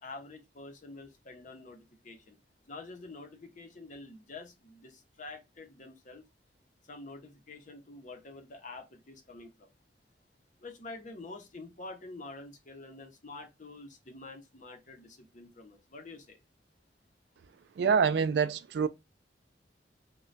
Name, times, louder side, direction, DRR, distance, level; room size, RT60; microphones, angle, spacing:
voice 1, 0.0-2.4 2.7-6.2 6.9-9.5 10.6-16.4, left 3 dB, 45° left, 0.7 m, -47 dB
voice 2, 17.8-18.9, right 6 dB, 65° right, 0.3 m, -26 dB
3.2 x 2.2 x 3.9 m
head